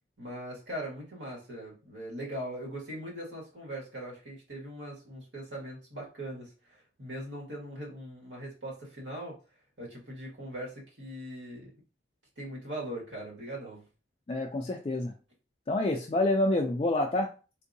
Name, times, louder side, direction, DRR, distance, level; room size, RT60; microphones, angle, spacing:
voice 1, 0.2-9.4 9.8-11.7 12.4-13.8, right 1 dB, 75° right, -3 dB, 1.6 m, -40 dB
voice 2, 14.3-15.1 15.7-17.3, left 2 dB, 30° left, 0 dB, 0.3 m, -27 dB
3.6 x 2.6 x 2.6 m, 0.34 s
head